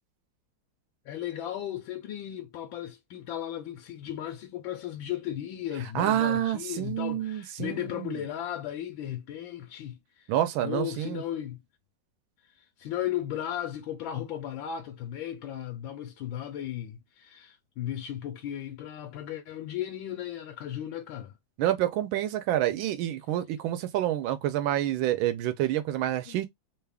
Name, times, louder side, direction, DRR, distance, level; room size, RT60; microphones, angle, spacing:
voice 1, 1.0-10.3 10.6-11.6 12.6-21.4 26.3-26.4, left 11 dB, 85° left, 1.4 m, -35 dB
voice 2, 5.9-8.1 10.3-11.2 21.6-26.5, right 12 dB, 85° right, 1.4 m, -28 dB
3.6 x 2.3 x 3.4 m
omnidirectional pair, 2.1 m